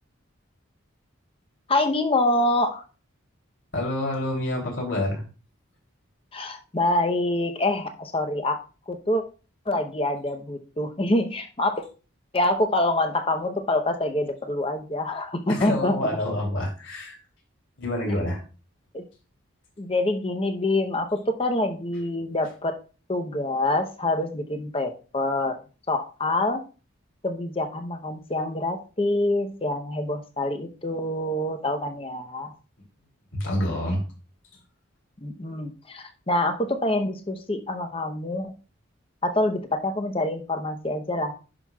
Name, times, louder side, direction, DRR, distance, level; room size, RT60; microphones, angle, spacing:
voice 1, 1.7-2.8 6.3-8.6 8.9-9.2 9.7-11.8 12.3-16.0 18.9-19.0 19.8-22.7 23.1-25.6 25.9-26.6 27.2-32.5 35.2-38.5 39.2-41.3, left 1 dB, 25° left, 6 dB, 0.7 m, -26 dB
voice 2, 3.7-5.2 15.5-17.2 17.8-18.4 33.3-34.0, left 1 dB, 60° left, 0 dB, 2.9 m, -27 dB
11.0 x 5.8 x 2.3 m, 0.35 s
head